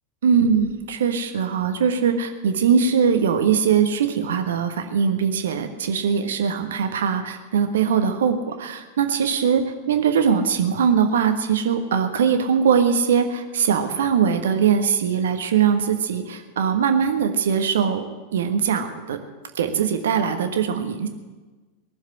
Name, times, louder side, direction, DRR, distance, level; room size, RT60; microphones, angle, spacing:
voice 1, 0.2-18.0 18.3-19.2 19.5-21.1, right 7 dB, 60° right, 7 dB, 1.3 m, -21 dB
19.0 x 7.3 x 9.6 m, 1.3 s
figure-of-eight pair, 90°, 0 cm